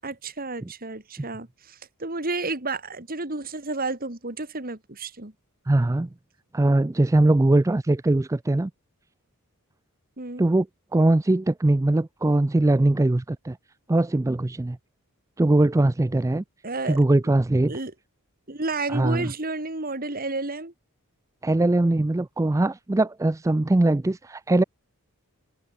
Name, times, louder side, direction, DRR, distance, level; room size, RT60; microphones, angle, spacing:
voice 1, 0.0-5.3 10.2-10.4 16.6-17.0 17.7-17.9 18.5-20.7, right 3 dB, 40° right, 3.0 m, -31 dB
voice 2, 5.7-6.1 6.5-8.7 10.4-10.7 10.9-13.6 13.9-14.8 15.4-16.4 16.8-17.7 18.9-19.3 21.4-24.6, right 2 dB, 15° right, 0.4 m, -21 dB
head